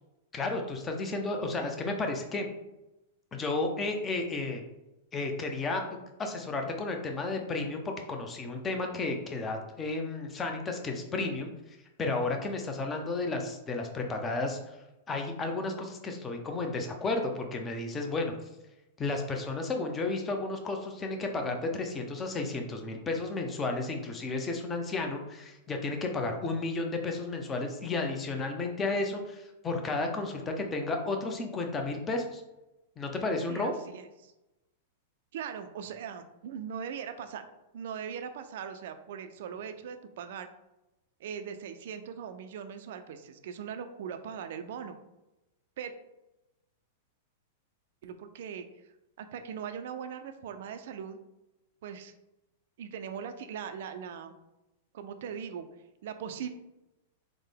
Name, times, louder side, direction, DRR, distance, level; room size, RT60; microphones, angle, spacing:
voice 1, 0.3-2.5 3.3-4.6 5.1-5.8 6.2-11.5 12.0-14.8 15.1-18.3 19.0-32.4 33.0-33.7, left 3 dB, 20° left, 3 dB, 0.6 m, -32 dB
voice 2, 33.5-34.3 35.3-37.4 37.7-40.5 41.2-45.0 45.8-45.9 48.0-48.7 49.2-51.2 51.8-52.1 52.8-54.3 54.9-55.7 56.0-56.5, right 7 dB, 65° right, 8 dB, 0.3 m, -40 dB
3.5 x 2.1 x 3.4 m, 0.96 s
hypercardioid pair, 105°, 0 cm